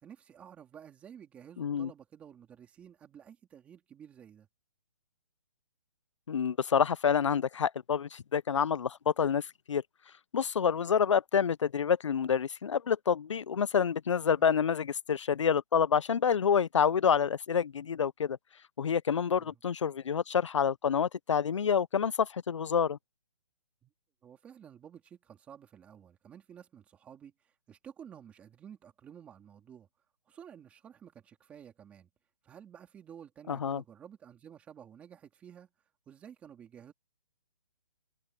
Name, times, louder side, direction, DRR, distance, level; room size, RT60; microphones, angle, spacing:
voice 1, 0.0-4.5 14.4-14.6 19.4-19.6 23.8-23.9 24.2-29.9 30.3-32.1 32.4-35.7 36.1-36.9, right 8 dB, 5° right, 3.1 m, -52 dB
voice 2, 1.6-1.9 6.3-9.8 10.3-18.4 18.8-23.0 33.5-33.8, left 7 dB, 60° left, 0.6 m, -28 dB
hypercardioid pair, 175°, 18 cm